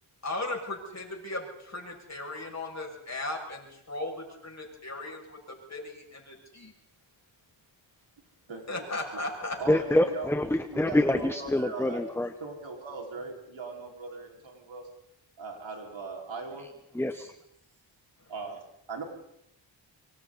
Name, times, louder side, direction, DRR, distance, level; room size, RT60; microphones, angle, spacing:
voice 1, 0.2-6.7 8.7-9.6, left 2 dB, 35° left, 0 dB, 6.9 m, -37 dB
voice 2, 8.5-8.8 9.6-10.3 10.7-12.0 12.4-14.8 15.4-16.7 18.3-19.0, right 4 dB, 75° right, 0 dB, 5.3 m, -39 dB
voice 3, 9.7-12.3 16.9-17.3, left 1 dB, 5° left, 9 dB, 1.0 m, -26 dB
25.5 x 24.0 x 4.2 m, 0.79 s
wide cardioid pair, 80°, 46 cm